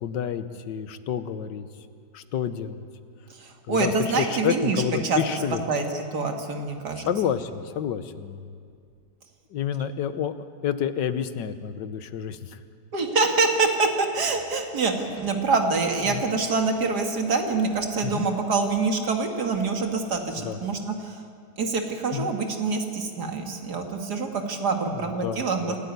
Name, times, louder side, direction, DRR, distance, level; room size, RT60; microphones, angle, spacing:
voice 1, 0.0-1.7 2.1-2.8 3.7-5.6 7.1-8.5 9.5-10.3 10.6-12.6 16.1-16.2 18.0-18.3 20.4-20.6 22.1-22.3 24.9-25.8, left 9 dB, 75° left, 11 dB, 1.6 m, -29 dB
voice 2, 3.4-5.2 5.7-7.1 12.9-21.2 21.6-25.8, right 4 dB, 60° right, 3 dB, 2.5 m, -25 dB
27.0 x 12.5 x 9.5 m, 2.2 s
omnidirectional pair, 1.9 m